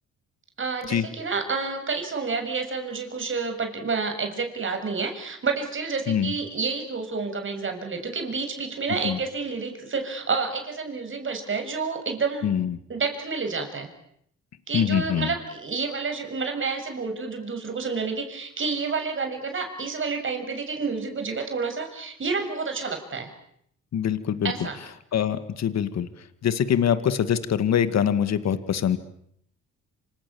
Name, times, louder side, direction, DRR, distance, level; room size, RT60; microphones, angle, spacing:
voice 1, 0.6-12.5 12.9-13.9 14.7-23.3 24.4-24.8, right 4 dB, 40° right, 5 dB, 7.0 m, -29 dB
voice 2, 12.4-12.8 14.7-15.3 23.9-24.5 25.1-26.1 26.4-29.0, left 8 dB, 60° left, 12 dB, 2.1 m, -24 dB
28.0 x 26.5 x 7.2 m, 0.70 s
cardioid pair, 90°, 30 cm